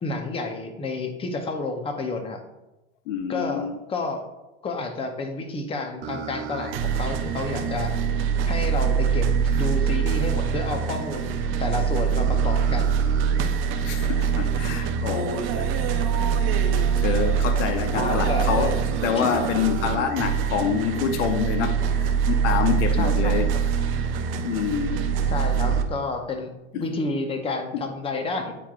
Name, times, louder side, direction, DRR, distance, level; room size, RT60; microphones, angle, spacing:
voice 1, 0.0-2.4 3.3-4.2 4.6-7.9 8.5-13.0 17.9-18.7 19.2-19.3 23.0-23.4 25.3-28.5, left 3 dB, 15° left, 0.7 m, -30 dB
voice 2, 3.1-3.8 13.6-16.1 17.0-18.8 19.0-23.5 24.4-25.0 26.7-26.9 27.7-27.8, left 8 dB, 65° left, 0.8 m, -27 dB
sound 1, 6.0-25.8, right 7 dB, 30° right, 0.5 m, -24 dB
8.7 x 4.5 x 2.4 m
hypercardioid pair, 120°, 39 cm